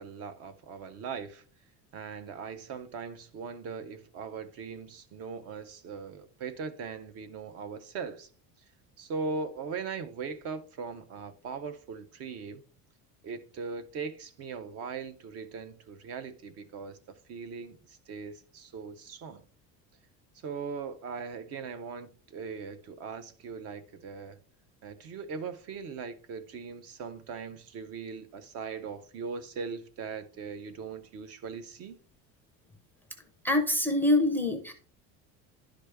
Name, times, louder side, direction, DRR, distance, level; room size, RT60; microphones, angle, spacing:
voice 1, 0.0-1.4 1.9-8.3 9.0-12.6 13.2-19.4 20.3-24.4 24.8-32.0, right 5 dB, 40° right, 0.6 m, -40 dB
voice 2, 33.4-34.7, left 1 dB, 5° left, 0.5 m, -25 dB
11.0 x 5.0 x 3.3 m
cardioid pair, 180°, 36 cm